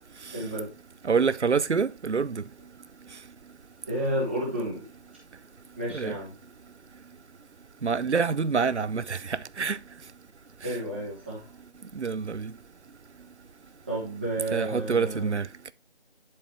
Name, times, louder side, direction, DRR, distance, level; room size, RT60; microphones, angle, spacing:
voice 1, 0.3-0.7 3.9-4.8 5.8-6.3 10.6-11.4 13.9-15.4, right 1 dB, 10° right, 1.5 m, -31 dB
voice 2, 1.0-2.4 5.9-6.2 7.8-9.8 12.0-12.5 14.5-15.5, right 5 dB, 85° right, 0.7 m, -26 dB
11.0 x 4.8 x 3.2 m
figure-of-eight pair, 170°, 34 cm